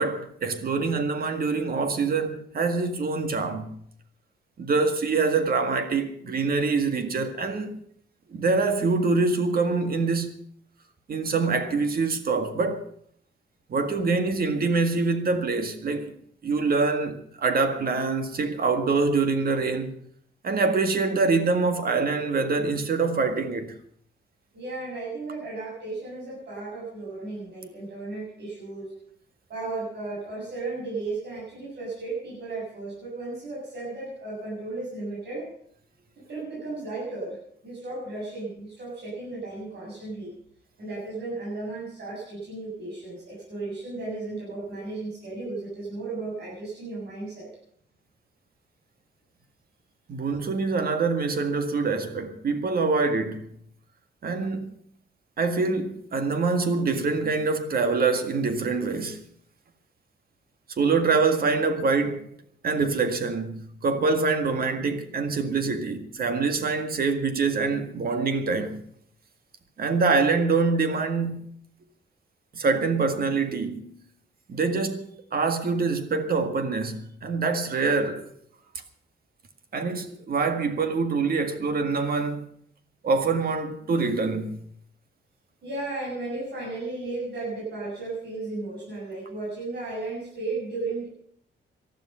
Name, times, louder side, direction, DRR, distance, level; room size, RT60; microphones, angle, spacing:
voice 1, 0.0-3.7 4.6-7.8 8.3-10.4 11.1-12.8 13.7-16.1 16.4-20.1 20.4-23.7 50.1-53.5 54.2-54.7 55.4-59.2 60.8-62.3 62.6-68.8 69.8-71.6 72.5-74.0 74.5-78.3 79.7-82.5 83.0-84.6, right 4 dB, 55° right, 1.8 m, -25 dB
voice 2, 24.5-28.9 29.5-35.5 36.3-40.3 40.8-47.5 85.6-91.1, right 3 dB, 70° right, 7.8 m, -34 dB
19.0 x 12.5 x 5.6 m
cardioid pair, 120°, 18 cm